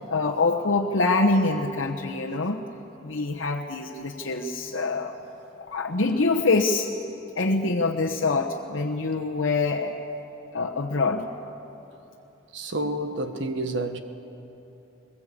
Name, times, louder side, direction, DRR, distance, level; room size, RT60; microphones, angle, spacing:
voice 1, 0.1-2.6 3.0-5.1 5.6-6.9 7.4-9.9 10.5-11.2, left 3 dB, 75° left, 1.1 m, -25 dB
voice 2, 12.5-14.0, right 1 dB, 65° right, 1.4 m, -29 dB
21.5 x 21.0 x 8.4 m
head